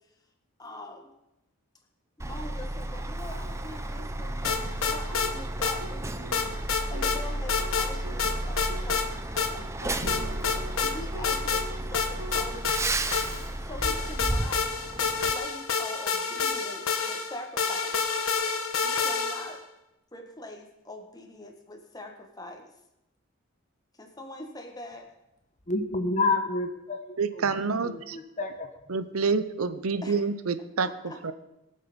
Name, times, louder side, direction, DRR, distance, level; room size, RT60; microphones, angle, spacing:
voice 1, 0.6-1.1 2.2-6.5 6.9-9.7 10.7-13.2 13.7-14.6 14.9-18.0 18.8-19.6 20.1-22.6 24.0-25.0 30.0-30.2 30.8-31.3, left 1 dB, 15° left, 3 dB, 1.6 m, -43 dB
Truck, 2.2-15.3, right 1 dB, 15° right, 0.6 m, -33 dB
sound 1, 2.8-12.7, right 1 dB, 60° right, 2.2 m, -45 dB
sound 2, 4.4-5.3 5.6-5.8 6.3-7.2 7.5-7.9 8.2-9.1 9.4-9.5 10.1-10.9 11.2-11.6 11.9-13.5 13.8-19.6, left 5 dB, 65° left, 1.4 m, -28 dB
voice 2, 25.7-27.1 27.9-28.6, left 3 dB, 35° left, 6 dB, 1.2 m, -28 dB
voice 3, 27.2-28.2 28.9-30.9 31.2-31.3, right 4 dB, 75° right, 12 dB, 0.8 m, -27 dB
21.5 x 7.6 x 5.3 m, 0.90 s
head